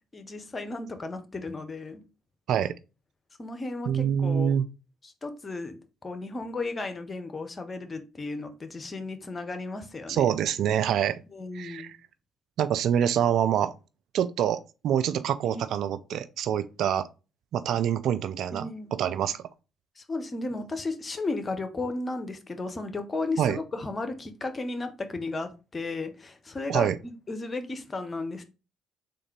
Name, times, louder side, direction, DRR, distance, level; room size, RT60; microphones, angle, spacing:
voice 1, 0.1-2.0 3.4-4.5 5.0-10.2 11.3-11.9 15.4-15.9 18.5-18.9 20.0-28.4, left 3 dB, 35° left, 0.8 m, -34 dB
voice 2, 3.9-4.6 10.1-11.2 11.5-12.0 12.6-13.7 14.1-17.1 17.5-18.7 19.0-19.4 23.4-23.6 26.7-27.0, right 9 dB, 65° right, 0.3 m, -26 dB
3.7 x 2.6 x 4.4 m
hypercardioid pair, 50°, 0 cm